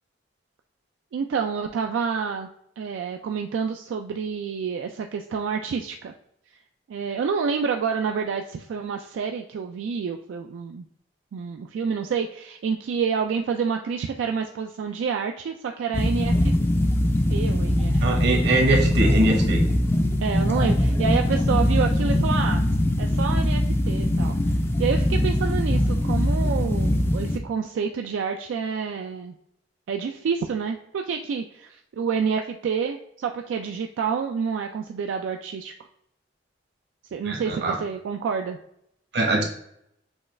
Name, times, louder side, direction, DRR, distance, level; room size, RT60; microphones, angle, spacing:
voice 1, 1.1-2.5 2.8-6.1 6.9-10.8 11.3-16.5 17.3-18.4 20.2-22.6 23.0-24.4 24.8-29.3 29.9-35.7 37.1-38.6, right 6 dB, 90° right, 4 dB, 0.3 m, -28 dB
sound 1, 15.9-27.4, left 1 dB, 15° left, 0.3 m, -22 dB
voice 2, 18.0-19.6 37.3-37.7 39.1-39.4, right 2 dB, 65° right, 1 dB, 1.0 m, -22 dB
6.2 x 2.3 x 3.2 m, 0.73 s
head